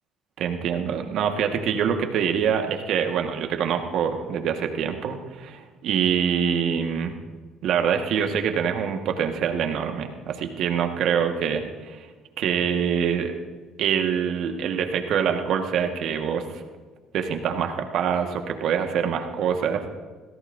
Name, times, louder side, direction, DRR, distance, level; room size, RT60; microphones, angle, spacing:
voice 1, 0.4-7.1 7.6-12.1 12.4-13.3 13.8-16.4 17.1-19.8, right 7 dB, 65° right, 5 dB, 1.5 m, -25 dB
25.5 x 16.0 x 2.7 m, 1.4 s
supercardioid pair, 70°, 0 cm